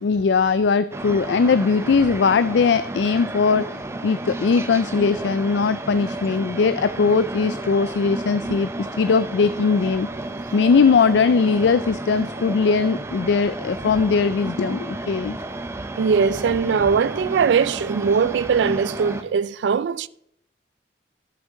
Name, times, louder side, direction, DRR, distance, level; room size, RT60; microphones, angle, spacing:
voice 1, 0.0-10.1 10.5-15.4, left 5 dB, 80° left, 0.4 m, -20 dB
sound 1, 0.9-19.2, right 2 dB, 15° right, 0.6 m, -32 dB
voice 2, 16.0-20.1, right 6 dB, 85° right, 0.4 m, -20 dB
13.0 x 7.4 x 3.8 m
head